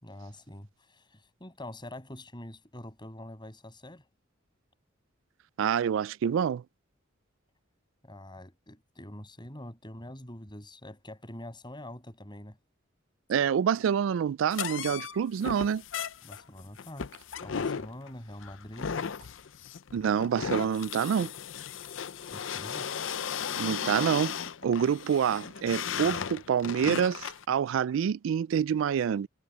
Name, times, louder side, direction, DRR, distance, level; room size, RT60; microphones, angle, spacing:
voice 1, 0.0-1.0 1.4-4.0 8.0-12.6 16.2-17.1 17.4-19.0 22.3-22.9, left 1 dB, 25° left, 7.3 m, -45 dB
voice 2, 5.6-6.6 13.3-15.8 19.9-21.3 23.6-24.4 24.6-29.3, right 8 dB, 75° right, 0.3 m, -27 dB
sound 1, 14.5-27.5, left 7 dB, 70° left, 0.6 m, -36 dB
head